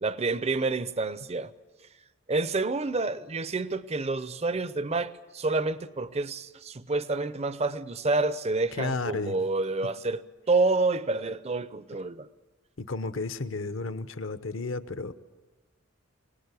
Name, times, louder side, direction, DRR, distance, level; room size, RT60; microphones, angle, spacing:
voice 1, 0.0-1.5 2.3-10.2 10.5-12.3, right 3 dB, 30° right, 0.7 m, -28 dB
voice 2, 8.8-9.4 12.8-15.1, left 3 dB, 60° left, 1.0 m, -32 dB
25.0 x 19.0 x 8.3 m
head